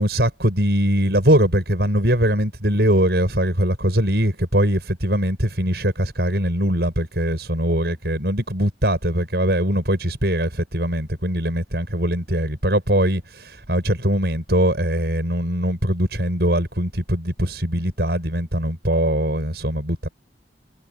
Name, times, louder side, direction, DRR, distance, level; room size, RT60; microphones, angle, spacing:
voice 1, 0.0-20.1, right 1 dB, 65° right, 6.8 m, -21 dB
head